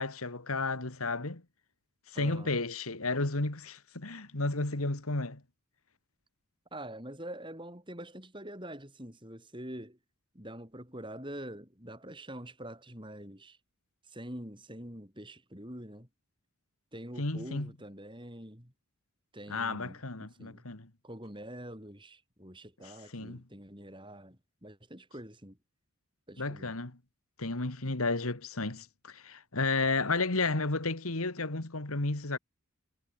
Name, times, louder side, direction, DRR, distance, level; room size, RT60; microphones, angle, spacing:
voice 1, 0.0-1.4 2.1-5.4 17.2-17.7 19.5-20.9 22.8-23.4 26.4-27.0 27.4-32.4, left 3 dB, 80° left, 2.2 m, -32 dB
voice 2, 2.1-2.5 6.7-10.0 10.3-13.6 14.0-16.1 16.9-18.7 19.3-20.6 21.0-25.6 26.3-26.7, right 1 dB, 20° right, 7.9 m, -45 dB
head